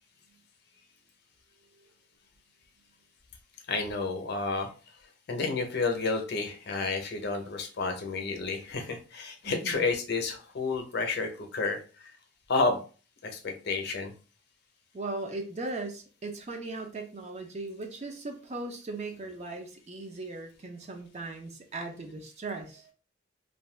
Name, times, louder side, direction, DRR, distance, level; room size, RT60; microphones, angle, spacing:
voice 1, 3.7-4.7 5.3-12.1 12.5-12.8 13.2-14.1, left 3 dB, 60° left, 5 dB, 0.6 m, -30 dB
voice 2, 9.4-9.9 14.9-22.9, right 2 dB, 35° right, 4 dB, 0.5 m, -38 dB
2.6 x 2.2 x 3.1 m, 0.36 s
head